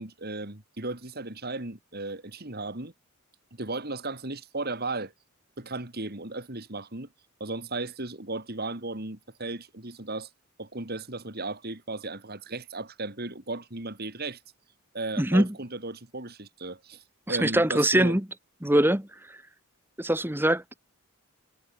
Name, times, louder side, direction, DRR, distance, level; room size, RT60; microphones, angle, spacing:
voice 1, 0.0-2.9 3.5-5.1 5.6-7.1 7.4-10.3 10.6-14.4 14.9-18.2, right 2 dB, 45° right, 2.8 m, -35 dB
voice 2, 15.2-15.5 17.3-18.2 18.6-19.4 20.0-20.8, right 1 dB, 10° right, 1.3 m, -23 dB
head